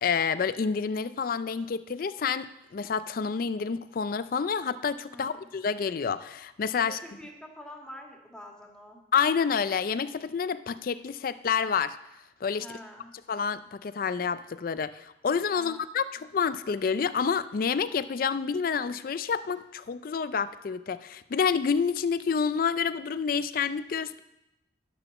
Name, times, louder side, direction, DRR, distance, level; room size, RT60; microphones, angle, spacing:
voice 1, 0.0-7.0 9.1-12.0 12.4-12.7 13.3-24.2, left 6 dB, 55° left, 14 dB, 0.4 m, -28 dB
voice 2, 5.1-5.5 6.8-9.0 12.6-13.1 15.5-15.8, equal, 5° left, 0 dB, 1.8 m, -46 dB
11.0 x 6.8 x 6.9 m, 0.90 s
head